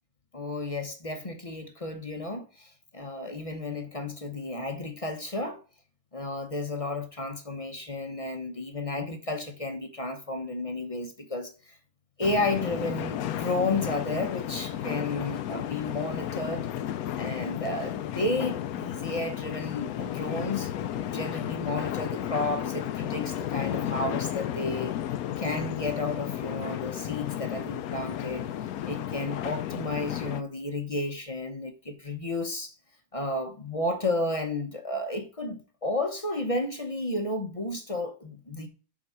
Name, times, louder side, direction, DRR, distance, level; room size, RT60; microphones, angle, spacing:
voice 1, 0.3-5.6 6.1-11.7 12.2-16.7 17.1-20.7 21.1-24.9 25.4-28.5 28.8-32.7 33.1-38.7, left 2 dB, 30° left, 0.7 m, -32 dB
sound 1, 12.2-30.4, left 11 dB, 75° left, 1.0 m, -33 dB
7.6 x 4.0 x 5.6 m
omnidirectional pair, 1.6 m